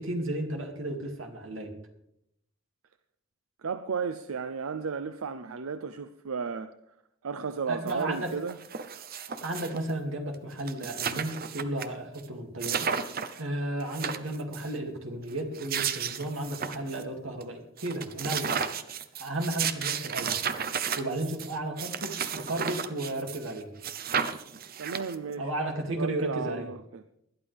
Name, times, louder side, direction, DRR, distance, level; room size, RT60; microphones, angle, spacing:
voice 1, 0.0-1.7 7.7-8.3 9.4-12.9 13.4-18.7 19.2-20.4 21.0-23.7 25.4-26.7, right 1 dB, 70° right, 2.5 m, -33 dB
voice 2, 3.6-6.7 7.2-8.6 24.8-25.5 26.0-27.0, right 5 dB, 90° right, 0.6 m, -34 dB
sound 1, 7.9-8.0 8.2-9.9 10.3-10.4 10.6-11.9 12.2-12.3 12.6-13.4 13.8-14.7 15.4-17.0 17.4-17.5 17.8-23.5 23.8-25.3, right 7 dB, 45° right, 0.7 m, -33 dB
20.0 x 12.0 x 3.5 m
head